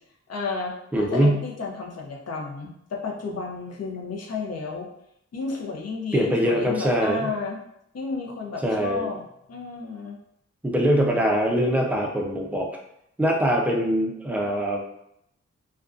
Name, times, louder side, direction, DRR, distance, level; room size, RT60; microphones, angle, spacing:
voice 1, 0.3-4.9 5.3-7.6 7.9-9.2 9.5-10.2, left 4 dB, 60° left, 0 dB, 0.5 m, -32 dB
voice 2, 0.9-1.4 6.1-7.3 8.6-9.1 10.6-12.7 13.2-14.9, equal, 5° right, -1 dB, 0.4 m, -23 dB
2.5 x 2.2 x 2.4 m, 0.77 s
wide cardioid pair, 100°, 29 cm